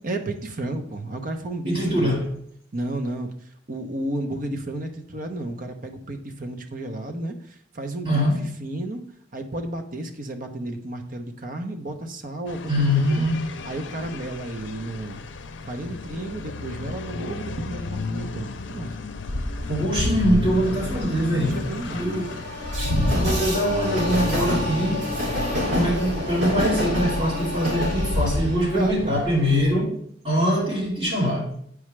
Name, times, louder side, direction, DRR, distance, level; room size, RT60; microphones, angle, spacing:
voice 1, 0.0-2.2 2.7-3.3 3.7-8.3 8.6-9.0 9.3-12.7 13.2-13.3 13.6-15.2 15.6-18.9 21.4-22.3 28.6-29.2, right 1 dB, 50° right, 0.8 m, -32 dB
voice 2, 1.7-2.3 8.0-8.4 12.7-13.3 19.7-21.6 21.9-22.4 23.1-25.1 25.7-30.0 30.2-31.5, equal, 30° right, 2.7 m, -23 dB
sound 1, 12.5-29.7, left 4 dB, 80° left, 0.5 m, -36 dB
Train, 19.3-29.7, left 1 dB, 75° right, 2.7 m, -27 dB
8.5 x 4.8 x 3.2 m
head